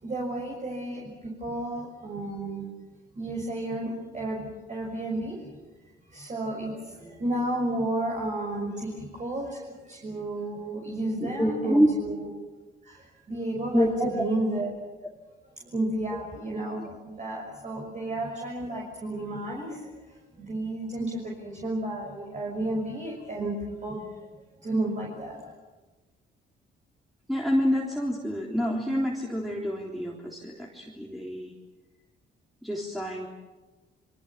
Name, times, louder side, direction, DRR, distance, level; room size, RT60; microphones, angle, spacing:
voice 1, 0.0-2.7 3.1-5.5 6.1-12.1 12.8-14.7 15.6-24.1 24.6-25.5, right 1 dB, 35° right, -2 dB, 6.3 m, -32 dB
voice 2, 11.2-11.9 13.7-14.2 16.8-16.9 27.3-31.5 32.6-33.3, equal, ahead, -2 dB, 3.5 m, -27 dB
26.5 x 23.5 x 7.4 m, 1.2 s
cardioid pair, 90°, 20 cm